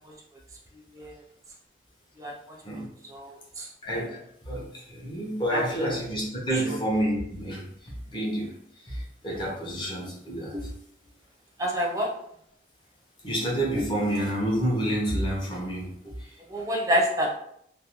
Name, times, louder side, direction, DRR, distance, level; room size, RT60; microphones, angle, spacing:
voice 1, 3.1-3.7 5.5-5.6 6.7-6.8 11.6-12.1 16.5-17.4, equal, 20° right, -1 dB, 0.5 m, -27 dB
voice 2, 3.8-10.7 13.2-16.4, right 1 dB, 25° left, -3 dB, 0.8 m, -29 dB
2.5 x 2.0 x 3.0 m, 0.70 s
head